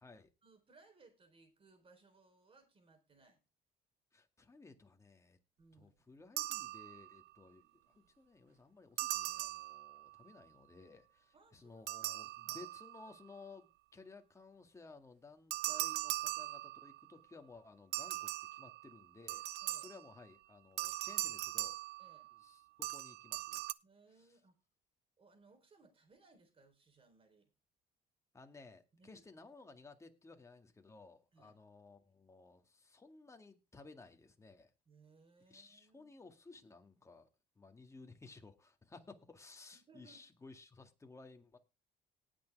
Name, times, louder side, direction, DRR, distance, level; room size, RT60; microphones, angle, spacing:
voice 1, 0.4-3.4 5.6-6.0 11.3-12.7 19.6-20.0 22.0-22.3 23.8-24.6 25.2-27.5 28.9-29.2 31.3-31.6 34.9-36.6 39.7-40.2, right 3 dB, 35° right, 3.8 m, -66 dB
voice 2, 4.1-5.4 5.8-21.8 22.4-23.6 24.2-24.3 28.3-34.7 35.5-37.3 37.6-41.6, left 3 dB, 15° left, 2.0 m, -57 dB
sound 1, 6.4-7.3 9.0-10.3 11.9-13.3 15.5-17.1 17.9-20.2 20.8-22.5 22.8-23.7, right 17 dB, 85° right, 0.5 m, -40 dB
19.0 x 6.3 x 3.5 m
cardioid pair, 110°, 17 cm